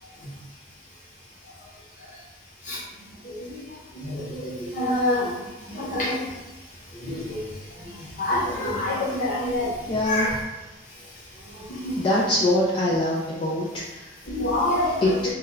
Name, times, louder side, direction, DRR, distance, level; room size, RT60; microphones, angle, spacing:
voice 1, 4.6-5.3 5.7-6.1 7.1-7.2 8.2-9.7 10.0-10.3 11.7-11.9 14.3-15.0, left 1 dB, 45° left, -7 dB, 0.8 m, -25 dB
voice 2, 9.9-10.3 12.0-13.6 15.0-15.2, left 1 dB, 30° left, -6 dB, 0.3 m, -22 dB
2.3 x 2.2 x 3.1 m, 1.1 s
head